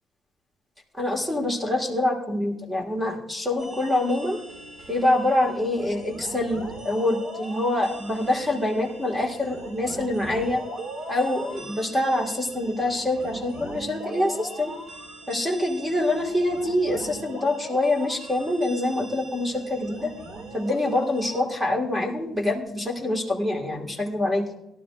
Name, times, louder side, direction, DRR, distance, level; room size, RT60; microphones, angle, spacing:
voice 1, 0.9-4.4 4.9-10.6 11.1-14.7 15.3-20.1 20.5-24.5, left 1 dB, 5° right, 1 dB, 1.8 m, -25 dB
sound 1, 3.6-21.4, right 2 dB, 60° right, 2.2 m, -40 dB
17.5 x 12.0 x 2.5 m, 0.89 s
cardioid pair, 115°, 0 cm